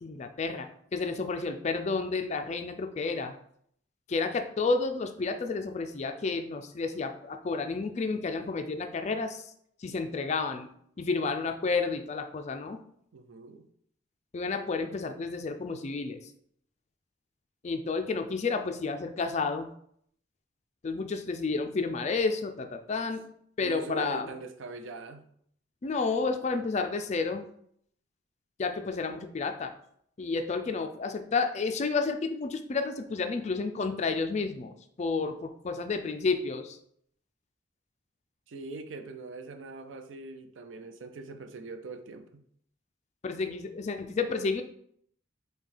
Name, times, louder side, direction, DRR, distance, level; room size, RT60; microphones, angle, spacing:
voice 1, 0.0-3.3 4.1-9.5 9.8-10.7 11.0-12.8 14.3-16.2 17.6-19.7 20.8-23.2 23.6-24.3 25.8-27.5 28.6-29.7 30.2-36.8 43.2-44.6, left 4 dB, 35° left, 6 dB, 0.4 m, -31 dB
voice 2, 13.1-13.7 23.6-25.2 38.5-42.4, right 3 dB, 80° right, 8 dB, 0.5 m, -42 dB
5.3 x 2.3 x 3.3 m, 0.67 s
head